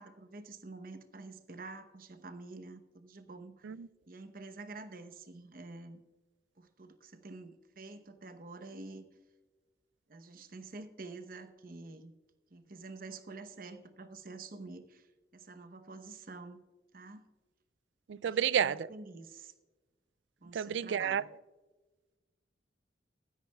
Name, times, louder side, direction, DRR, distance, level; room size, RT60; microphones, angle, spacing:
voice 1, 0.0-3.7 4.1-6.0 6.6-9.1 10.1-12.1 12.5-16.7 16.9-17.2 18.2-19.5 20.4-21.3, right 3 dB, 50° right, 0.9 m, -48 dB
voice 2, 18.1-18.9 20.5-21.2, right 8 dB, 90° right, 0.4 m, -30 dB
16.0 x 12.0 x 2.3 m
head